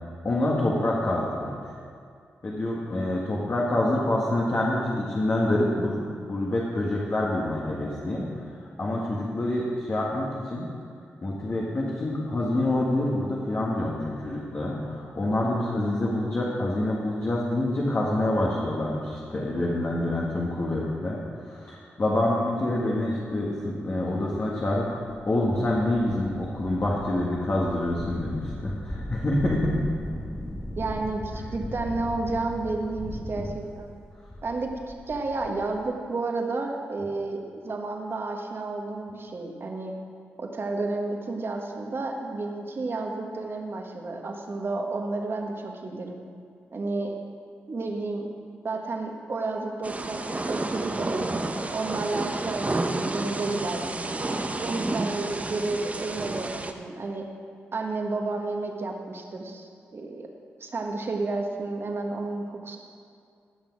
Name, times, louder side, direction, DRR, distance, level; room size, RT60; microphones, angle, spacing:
voice 1, 0.2-1.6 2.4-8.3 8.8-10.7 11.2-21.2 21.5-29.8, left 1 dB, 45° left, -4 dB, 1.9 m, -26 dB
sound 1, 24.8-35.8, left 1 dB, 15° left, 1.3 m, -38 dB
voice 2, 30.8-33.9 34.4-34.7 35.1-39.9 40.4-46.2 46.7-47.1 47.7-48.3 48.6-51.3 51.5-54.1 54.6-57.2 57.7-60.3 60.6-62.8, right 3 dB, 50° right, 2 dB, 1.6 m, -31 dB
Thunder / Rain, 49.8-56.7, right 2 dB, 30° right, 0.9 m, -30 dB
17.0 x 6.0 x 4.9 m, 2.3 s
supercardioid pair, 45°, 5 cm